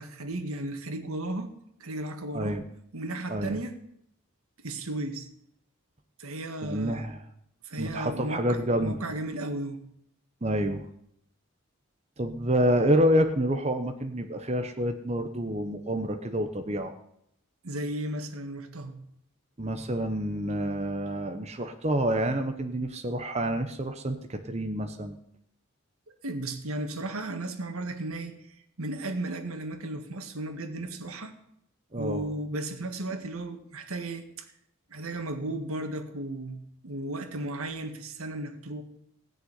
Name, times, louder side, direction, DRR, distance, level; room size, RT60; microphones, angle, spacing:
voice 1, 0.0-1.5 1.8-2.6 2.9-3.8 4.6-5.3 6.2-7.1 7.6-9.8 17.6-18.9 26.2-28.4 28.8-31.3 32.0-34.5 34.9-36.6 36.8-38.8, right 1 dB, 85° right, 6 dB, 1.8 m, -35 dB
voice 2, 6.6-7.2 7.8-9.0 10.4-10.8 12.2-16.9 19.6-25.2 31.9-32.2, equal, 30° right, 6 dB, 1.0 m, -28 dB
17.0 x 6.6 x 9.5 m, 0.74 s
head